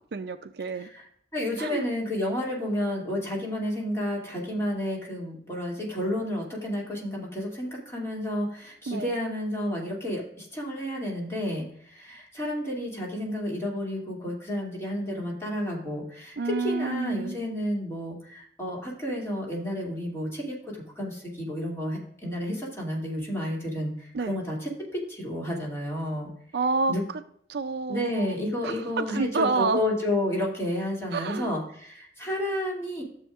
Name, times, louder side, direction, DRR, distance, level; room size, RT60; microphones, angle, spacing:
voice 1, 0.1-0.9 1.6-1.9 8.9-9.1 16.4-17.3 24.1-24.3 26.5-26.9 27.5-28.3 28.6-29.8 31.1-31.5, right 4 dB, 65° right, 10 dB, 0.5 m, -28 dB
voice 2, 0.7-1.1 1.3-26.3 26.9-27.0 27.9-33.0, left 1 dB, 15° left, -3 dB, 2.5 m, -31 dB
12.5 x 7.0 x 2.5 m, 0.66 s
head